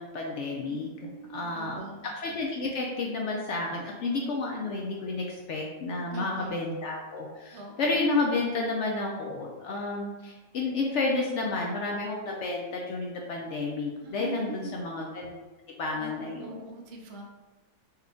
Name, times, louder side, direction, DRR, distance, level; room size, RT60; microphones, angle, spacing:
voice 1, 0.0-0.9 1.3-1.8 2.2-15.3 15.8-16.7, left 3 dB, 65° left, -1 dB, 0.7 m, -31 dB
voice 2, 0.7-2.1 6.1-6.5 7.5-7.9 14.0-14.7 15.9-17.2, right 3 dB, 60° right, 1 dB, 0.7 m, -43 dB
4.4 x 2.3 x 3.6 m, 1.2 s
omnidirectional pair, 1.6 m